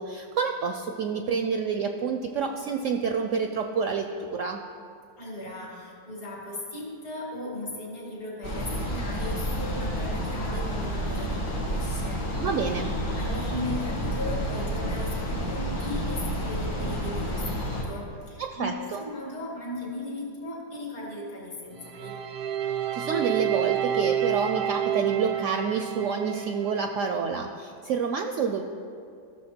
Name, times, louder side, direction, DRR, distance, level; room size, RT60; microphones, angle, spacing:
voice 1, 0.0-4.6 12.4-12.9 18.4-19.0 22.9-28.6, right 5 dB, 70° right, 5 dB, 0.7 m, -28 dB
voice 2, 5.2-12.3 13.1-22.2, left 1 dB, 60° left, -3 dB, 2.7 m, -37 dB
sound 1, 8.4-17.8, equal, 75° left, 2.2 m, -30 dB
sound 2, 21.9-27.1, right 10 dB, 90° right, 1.3 m, -29 dB
14.0 x 6.5 x 4.3 m, 2.4 s
omnidirectional pair, 1.7 m